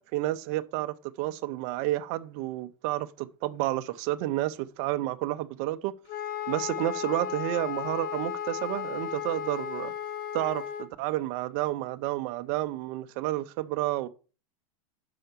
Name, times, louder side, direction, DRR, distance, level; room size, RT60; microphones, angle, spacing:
voice 1, 0.0-5.9 6.5-9.9 10.3-14.1, right 16 dB, 30° right, 0.4 m, -30 dB
Wind instrument woodwind instrument, 6.1-10.9, left 9 dB, 45° left, 1.2 m, -35 dB
5.6 x 5.6 x 6.5 m
supercardioid pair, 175°, 18 cm